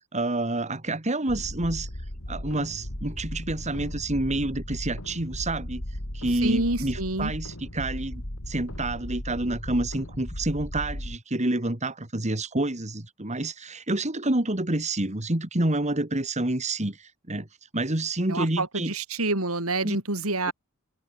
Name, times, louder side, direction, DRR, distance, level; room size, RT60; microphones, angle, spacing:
voice 1, 0.1-1.9 2.3-5.8 6.1-17.5 17.7-18.9 19.8-20.0, right 2 dB, 35° right, 2.5 m, -28 dB
sound 1, 1.3-11.2, left 1 dB, 70° left, 4.5 m, -36 dB
voice 2, 6.4-7.3 18.3-20.5, right 2 dB, 80° right, 5.2 m, -27 dB
head